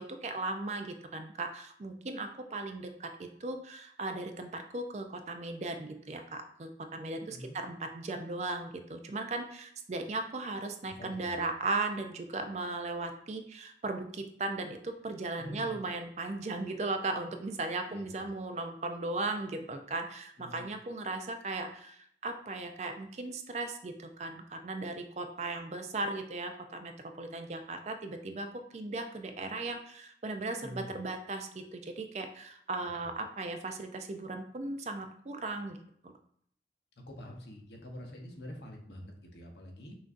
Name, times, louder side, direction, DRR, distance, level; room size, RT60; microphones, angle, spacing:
voice 1, 0.0-26.9 27.2-35.8 36.0-36.2, right 2 dB, 40° right, 6 dB, 0.4 m, -37 dB
voice 2, 10.8-11.4 15.4-15.8 17.9-18.3 20.4-20.7 30.6-30.9 33.0-33.1 37.0-39.9, equal, 75° left, 2 dB, 0.8 m, -46 dB
5.8 x 2.6 x 2.5 m, 0.65 s
head